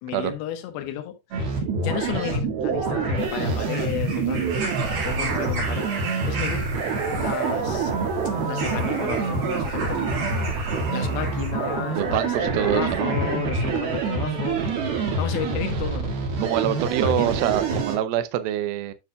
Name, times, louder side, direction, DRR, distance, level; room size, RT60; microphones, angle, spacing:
voice 1, 0.0-1.5 1.8-4.4 5.0-5.9 6.3-6.7 7.1-7.9 8.4-10.1 10.9-14.6 15.2-16.2 17.0-17.3, left 11 dB, 70° left, 2.8 m, -32 dB
sound 1, 1.3-18.0, right 4 dB, 60° right, 3.7 m, -26 dB
sound 2, 3.2-11.8 12.8-12.9, right 3 dB, 45° right, 2.3 m, -35 dB
voice 2, 11.9-13.1 16.4-18.9, right 12 dB, 80° right, 2.1 m, -25 dB
9.3 x 7.1 x 2.3 m
omnidirectional pair, 5.1 m